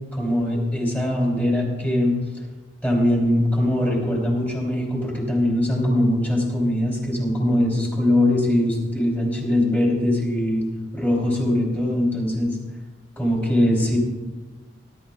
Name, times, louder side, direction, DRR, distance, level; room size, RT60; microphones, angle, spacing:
voice 1, 0.1-2.2 2.8-10.6 10.9-12.6 13.2-14.0, left 1 dB, 10° left, -2 dB, 3.0 m, -21 dB
18.0 x 11.0 x 2.3 m, 1.3 s
head